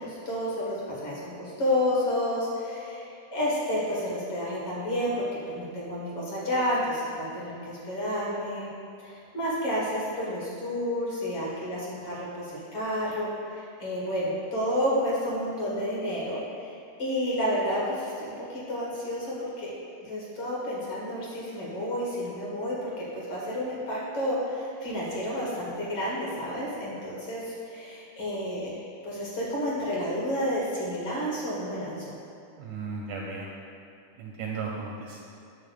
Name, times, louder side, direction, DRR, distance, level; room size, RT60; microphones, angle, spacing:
voice 1, 0.0-8.7 9.0-19.7 20.0-32.1, equal, 50° left, -6 dB, 2.2 m, -30 dB
voice 2, 32.6-33.5 34.2-35.2, right 4 dB, 80° right, -1 dB, 1.7 m, -35 dB
8.9 x 3.7 x 6.7 m, 2.5 s
omnidirectional pair, 3.8 m